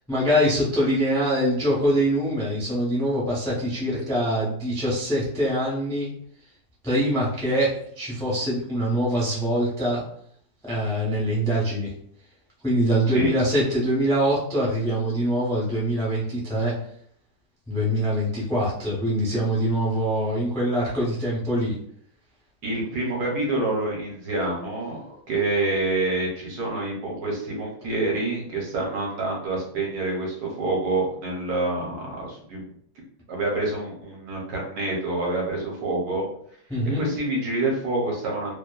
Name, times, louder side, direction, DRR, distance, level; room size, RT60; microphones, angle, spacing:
voice 1, 0.1-6.1 6.8-10.0 10.6-11.9 12.6-16.7 17.7-21.8 36.7-37.0, equal, 5° left, -6 dB, 0.3 m, -24 dB
voice 2, 22.6-32.6 33.3-36.3 36.9-38.6, right 2 dB, 70° right, -1 dB, 1.2 m, -27 dB
2.8 x 2.1 x 2.3 m, 0.63 s
omnidirectional pair, 1.8 m